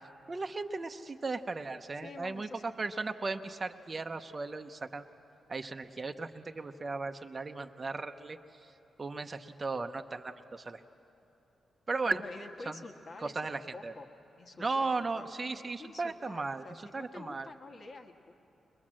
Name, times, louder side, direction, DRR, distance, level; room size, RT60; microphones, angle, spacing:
voice 1, 0.3-5.1 5.5-8.4 9.0-10.8 11.9-12.2 12.7-12.8 13.2-13.9 14.6-16.6 16.9-17.5, right 3 dB, 30° right, 6 dB, 0.7 m, -36 dB
voice 2, 1.9-2.8 12.0-14.1 14.4-15.3 15.5-18.3, left 3 dB, 45° left, 4 dB, 1.5 m, -48 dB
22.5 x 21.5 x 7.5 m, 3.0 s
wide cardioid pair, 120°, 0 cm